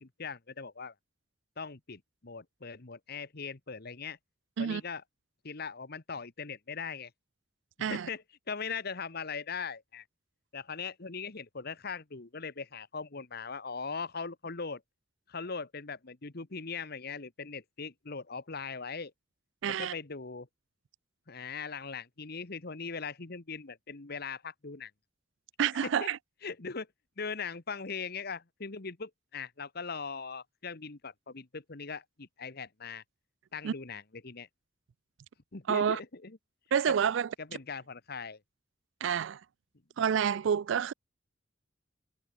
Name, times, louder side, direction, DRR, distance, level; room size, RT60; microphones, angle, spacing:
voice 1, 0.0-0.9 1.6-4.2 4.6-5.0 5.4-7.1 7.8-10.0 10.5-14.8 15.3-19.1 19.7-20.5 21.3-24.9 25.8-26.1 26.4-26.9 27.2-33.0 33.5-34.5 35.5-36.3 36.9-37.0 37.4-38.4, left 5 dB, 55° left, 1.4 m, -40 dB
voice 2, 19.6-19.9 25.6-26.2 33.6-33.7 35.7-36.0 36.7-37.3 39.0-39.4 40.0-40.9, right 8 dB, 75° right, 0.4 m, -28 dB
head